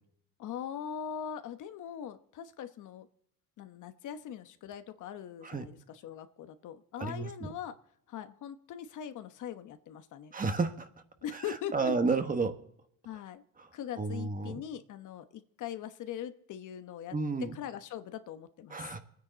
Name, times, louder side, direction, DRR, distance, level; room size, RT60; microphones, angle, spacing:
voice 1, 0.4-3.1 3.6-7.8 8.1-10.3 11.2-11.9 13.0-13.4 13.7-17.2 17.5-18.9, left 9 dB, 65° left, 9 dB, 1.1 m, -41 dB
voice 2, 7.0-7.5 10.3-10.9 11.7-12.6 14.0-14.6 17.1-17.6 18.7-19.0, right 4 dB, 25° right, 8 dB, 1.3 m, -31 dB
23.5 x 9.6 x 4.0 m, 0.72 s
cardioid pair, 105°, 33 cm